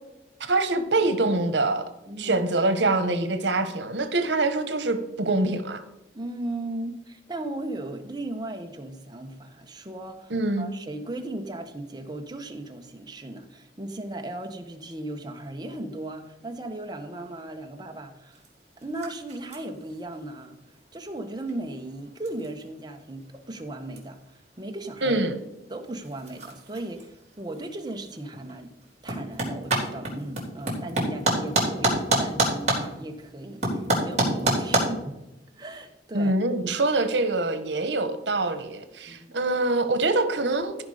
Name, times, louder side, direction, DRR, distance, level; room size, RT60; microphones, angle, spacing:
voice 1, 0.4-1.9 2.2-5.8 10.3-10.7 25.0-25.4 36.1-40.8, right 2 dB, 85° right, 1.2 m, -24 dB
voice 2, 2.1-2.4 6.1-18.4 18.8-20.6 20.9-25.2 25.7-28.7 29.0-35.2 35.5-36.3 39.1-39.4, right 1 dB, 25° right, 1.1 m, -37 dB
sound 1, 18.3-34.8, right 1 dB, 40° right, 4.0 m, -31 dB
15.0 x 5.2 x 5.0 m
head